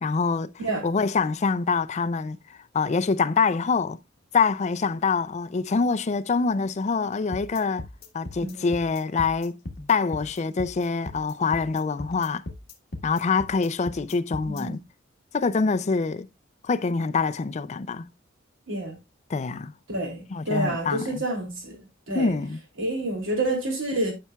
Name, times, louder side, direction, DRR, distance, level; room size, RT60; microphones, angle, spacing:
voice 1, 0.0-0.5 0.8-2.4 2.7-4.0 4.3-7.8 8.1-9.6 9.9-12.4 13.0-14.8 15.3-16.3 16.6-18.1 19.3-19.7 20.3-21.2 22.1-22.6, left 4 dB, 35° left, 0.4 m, -25 dB
sound 1, 7.3-14.6, left 1 dB, 55° left, 1.4 m, -38 dB
voice 2, 14.4-14.8 18.7-19.0 19.9-21.8 22.1-22.3 22.8-24.1, right 1 dB, 80° right, 2.9 m, -28 dB
10.0 x 5.6 x 2.3 m
head